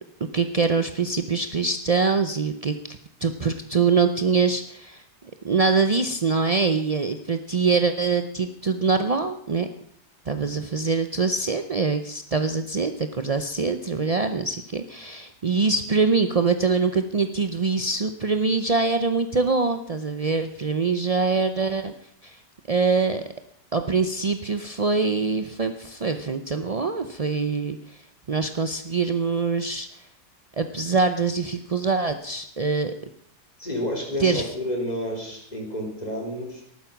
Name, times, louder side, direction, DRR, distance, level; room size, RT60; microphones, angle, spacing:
voice 1, 0.3-5.0 5.4-9.7 10.3-21.9 22.2-22.4 22.7-23.2 23.7-27.8 28.3-29.9 30.6-32.9 34.2-34.5, right 4 dB, 65° right, 8 dB, 0.3 m, -24 dB
voice 2, 33.6-36.6, equal, 25° left, 0 dB, 3.9 m, -30 dB
14.0 x 12.0 x 5.9 m, 0.67 s
omnidirectional pair, 1.8 m